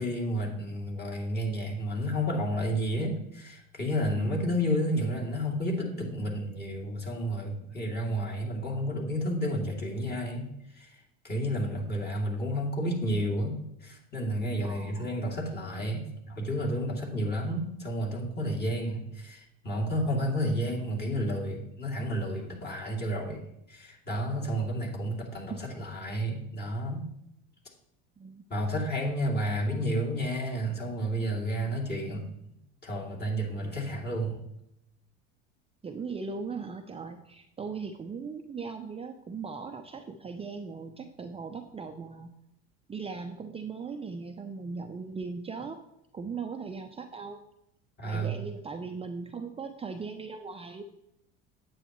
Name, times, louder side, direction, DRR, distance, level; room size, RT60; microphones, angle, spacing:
voice 1, 0.0-10.5 10.7-11.0 11.2-23.4 23.7-27.1 28.5-32.3 32.8-34.4 48.0-48.4, equal, 30° left, -2 dB, 2.7 m, -31 dB
voice 2, 4.2-4.6 14.6-15.2 25.5-25.6 28.2-28.4 35.8-42.3 42.9-45.8 46.1-47.4 48.0-50.8, right 5 dB, 20° right, 5 dB, 0.6 m, -39 dB
8.9 x 7.8 x 3.1 m, 0.81 s
hypercardioid pair, 80°, 30 cm